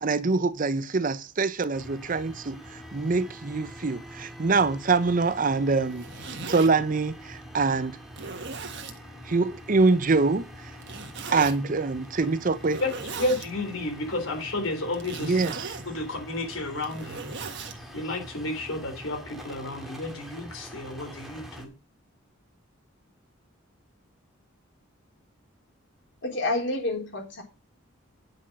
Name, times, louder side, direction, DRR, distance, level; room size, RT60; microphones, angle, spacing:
voice 1, 0.0-6.1 6.5-8.0 9.3-10.5 11.3-12.8 15.2-15.8, right 4 dB, 40° right, 0.6 m, -24 dB
sound 1, 1.7-21.7, equal, ahead, 2.0 m, -45 dB
Zipper (clothing), 5.8-6.7 7.4-7.5 8.1-9.0 10.8-11.6 12.6-13.5 14.9-15.9 16.7-17.8, right 4 dB, 60° right, 1.6 m, -38 dB
voice 2, 13.2-15.4 15.9-17.3 17.9-21.7, left 2 dB, 75° left, 3.5 m, -31 dB
voice 3, 26.2-27.4, left 2 dB, 60° left, 3.9 m, -28 dB
9.8 x 6.2 x 6.4 m
head